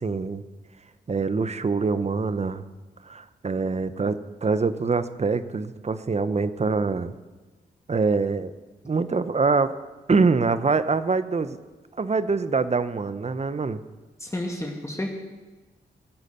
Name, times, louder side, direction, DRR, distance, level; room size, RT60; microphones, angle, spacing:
voice 1, 0.0-0.4 1.1-2.6 3.0-7.1 7.9-8.5 8.8-9.7 10.1-11.6 12.0-13.8, right 4 dB, 40° right, 13 dB, 0.9 m, -24 dB
voice 2, 14.2-15.2, left 1 dB, 15° left, 1 dB, 2.3 m, -31 dB
19.0 x 8.2 x 6.8 m, 1.3 s
cardioid pair, 55°, 17 cm